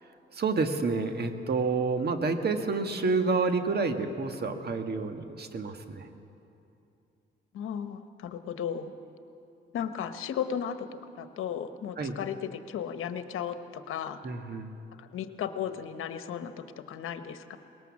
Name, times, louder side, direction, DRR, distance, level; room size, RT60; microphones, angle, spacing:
voice 1, 0.3-6.1 12.0-12.2 14.2-14.7, right 4 dB, 50° right, 6 dB, 1.7 m, -29 dB
voice 2, 7.5-8.9 9.7-10.9 11.2-14.2 15.0-17.6, left 8 dB, 85° left, 9 dB, 1.0 m, -35 dB
20.0 x 18.5 x 7.3 m, 2.7 s
cardioid pair, 75°, 21 cm